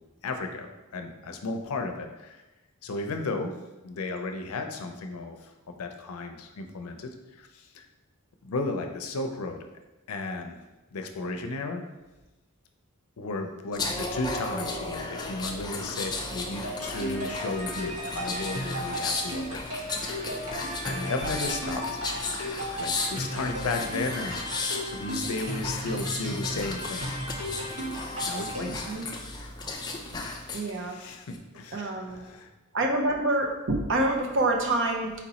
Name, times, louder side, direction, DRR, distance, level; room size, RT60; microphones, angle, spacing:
voice 1, 0.2-0.7 0.9-2.4 2.8-3.5 3.8-7.9 8.4-9.6 10.1-10.6 10.9-11.8 13.2-19.9 20.6-22.0 22.8-24.4 24.9-27.1 28.2-28.9 30.4-32.5, left 3 dB, 75° left, 5 dB, 0.5 m, -34 dB
sound 1, 13.7-30.7 31.1-31.4, left 3 dB, 20° left, 0.4 m, -35 dB
sound 2, 16.6-28.9, equal, 85° right, 1.5 m, -35 dB
voice 2, 28.7-29.0 30.5-31.0 31.7-32.2 32.7-35.1, right 2 dB, 60° right, 2 dB, 0.7 m, -27 dB
4.3 x 2.9 x 4.1 m, 1.1 s
head